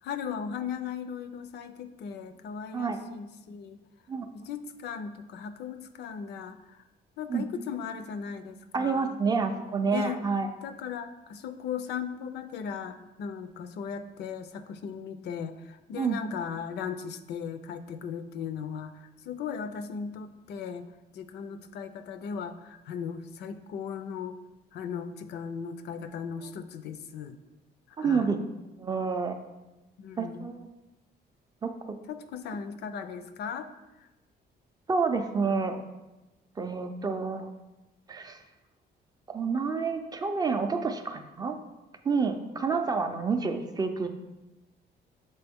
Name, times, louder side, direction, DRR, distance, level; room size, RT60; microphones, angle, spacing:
voice 1, 0.0-3.8 4.3-6.8 7.2-9.2 9.9-10.2 10.6-20.8 21.1-24.4 24.7-27.4 27.9-28.3 30.0-30.5 32.1-33.7 34.0-34.1, left 7 dB, 70° left, 10 dB, 0.5 m, -37 dB
voice 2, 8.7-10.5 16.0-16.2 28.0-28.4 28.6-29.4 30.2-30.7 31.6-32.0 34.9-35.8 36.6-37.5 38.1-38.4 39.3-41.6 42.0-44.1, right 5 dB, 20° right, 6 dB, 0.4 m, -29 dB
6.7 x 4.4 x 3.5 m, 1.0 s
cardioid pair, 160°, 18 cm